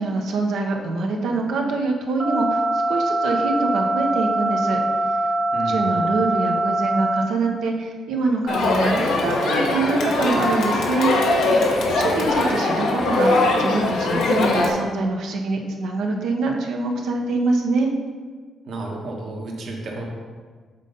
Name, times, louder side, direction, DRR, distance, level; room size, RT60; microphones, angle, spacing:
voice 1, 0.0-4.8 5.1-5.2 5.6-11.1 12.0-17.9, right 3 dB, 80° right, 2 dB, 1.0 m, -24 dB
sound 1, 2.2-7.2, right 1 dB, 45° right, 1.4 m, -23 dB
voice 2, 5.5-6.1 11.7-12.5 18.7-20.0, right 2 dB, 60° right, -1 dB, 1.4 m, -33 dB
Crowd, 8.5-14.7, left 2 dB, 80° left, 1.1 m, -21 dB
7.4 x 3.8 x 5.4 m, 1.5 s
cardioid pair, 90°, 0 cm